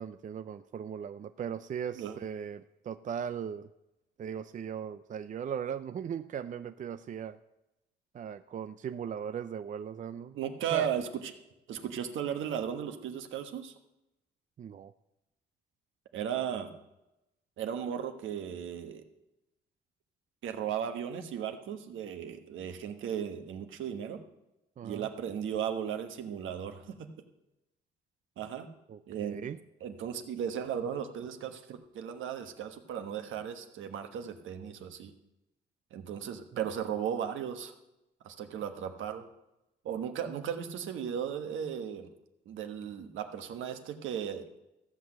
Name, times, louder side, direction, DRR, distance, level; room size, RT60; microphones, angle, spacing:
voice 1, 0.0-3.7 4.2-7.4 8.1-10.4 10.7-10.9 14.6-14.9 24.8-25.1 28.9-29.6, right 8 dB, 40° right, 11 dB, 0.5 m, -38 dB
voice 2, 10.3-11.3 11.7-13.7 16.1-16.7 17.6-19.0 20.4-24.2 24.8-27.1 28.4-28.7 29.1-29.4 29.8-35.1 35.9-37.7 38.2-39.2 39.8-42.1 42.4-44.6, right 8 dB, 80° right, 6 dB, 1.4 m, -36 dB
14.5 x 6.1 x 7.6 m, 0.93 s
cardioid pair, 90°, 20 cm